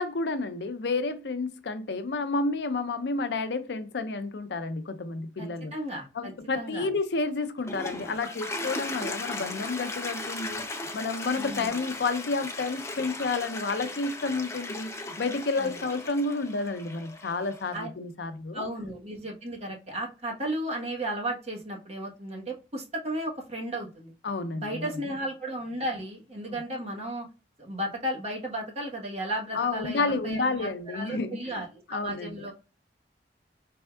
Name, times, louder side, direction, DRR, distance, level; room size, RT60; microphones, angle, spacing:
voice 1, 0.0-5.7 6.1-10.7 10.9-18.7 24.2-25.1 26.5-26.6 29.5-31.6 31.9-32.5, left 3 dB, 75° left, 0.5 m, -30 dB
voice 2, 5.4-6.9 7.9-8.0 11.3-11.8 15.6-15.7 17.7-17.9 18.5-24.1 24.6-27.3 27.6-32.5, right 1 dB, 35° right, 1.1 m, -34 dB
Toilet flush, 7.4-17.8, left 2 dB, 15° left, 0.4 m, -37 dB
4.4 x 3.4 x 2.3 m
head